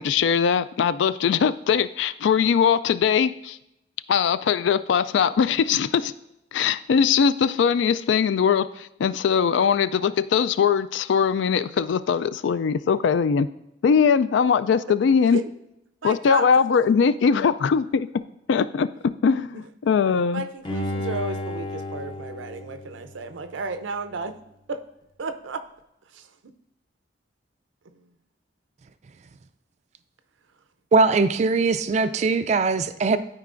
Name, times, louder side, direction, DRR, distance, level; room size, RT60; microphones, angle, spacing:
voice 1, 0.0-3.6 4.1-6.1 6.5-13.5 13.8-15.4 16.0-18.1 18.5-18.9 19.2-20.4, left 6 dB, 75° left, 15 dB, 0.3 m, -21 dB
voice 2, 16.0-16.5 20.3-24.4 24.7-24.8 25.2-25.6 26.1-26.3, right 3 dB, 85° right, 9 dB, 0.6 m, -32 dB
Bowed string instrument, 20.7-23.8 24.2-24.3, left 1 dB, 25° left, 0.6 m, -33 dB
voice 3, 30.9-33.2, right 4 dB, 35° right, 12 dB, 0.3 m, -21 dB
12.5 x 4.6 x 2.5 m, 0.85 s
head